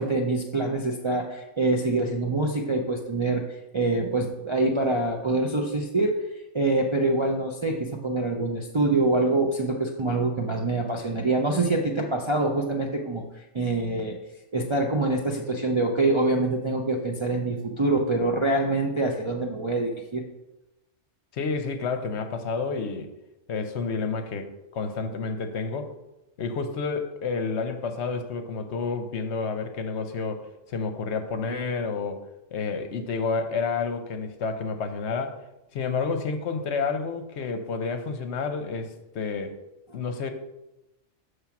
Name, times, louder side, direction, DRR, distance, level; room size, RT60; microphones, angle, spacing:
voice 1, 0.0-6.2 6.5-13.2 13.5-14.2 14.5-20.2, right 2 dB, 40° right, -1 dB, 0.4 m, -25 dB
voice 2, 21.3-23.1 23.5-25.9 26.4-32.2 32.5-35.4 35.7-39.6 39.9-40.3, left 4 dB, 65° left, 7 dB, 0.9 m, -30 dB
7.1 x 3.3 x 5.8 m, 0.95 s
omnidirectional pair, 1.3 m